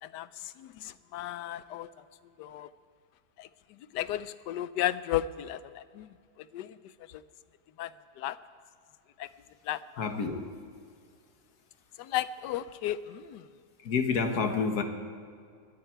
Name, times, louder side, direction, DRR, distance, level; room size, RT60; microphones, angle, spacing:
voice 1, 0.0-1.9 2.4-2.7 3.4-6.1 6.4-6.8 7.1-7.2 7.8-7.9 8.2-8.4 9.2-9.3 9.6-10.0 12.0-13.5, left 12 dB, 90° left, 15 dB, 1.2 m, -34 dB
voice 2, 10.0-10.6 13.8-14.8, left 5 dB, 70° left, 6 dB, 1.7 m, -29 dB
21.0 x 13.5 x 4.6 m, 2.2 s
omnidirectional pair, 1.8 m